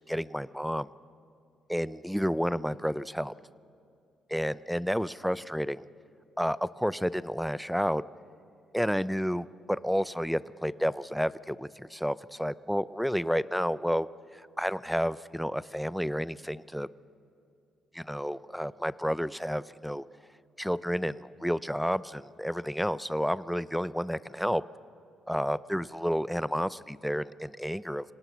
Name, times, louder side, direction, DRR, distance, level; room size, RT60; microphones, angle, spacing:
voice 1, 0.1-0.9 1.7-3.3 4.3-5.9 6.4-8.0 8.7-14.1 14.3-16.9 17.9-20.0 20.6-24.6 25.3-28.1, equal, ahead, 18 dB, 0.5 m, -30 dB
25.5 x 18.5 x 6.2 m, 2.5 s
cardioid pair, 90°, 0 cm